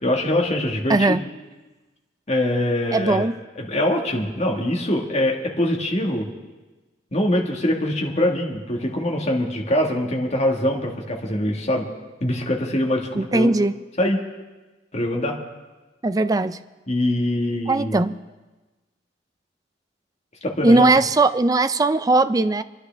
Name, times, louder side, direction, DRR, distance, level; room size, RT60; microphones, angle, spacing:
voice 1, 0.0-1.2 2.3-3.3 3.6-6.3 7.1-11.9 12.2-13.5 14.0-14.2 14.9-15.4 16.9-17.9 20.4-20.9, left 1 dB, 35° left, 0 dB, 1.8 m, -23 dB
voice 2, 0.9-1.2 2.9-3.3 13.2-13.7 16.0-16.6 17.7-18.2 20.6-22.6, right 2 dB, 20° right, 12 dB, 0.4 m, -19 dB
26.5 x 11.0 x 3.4 m, 1.2 s
head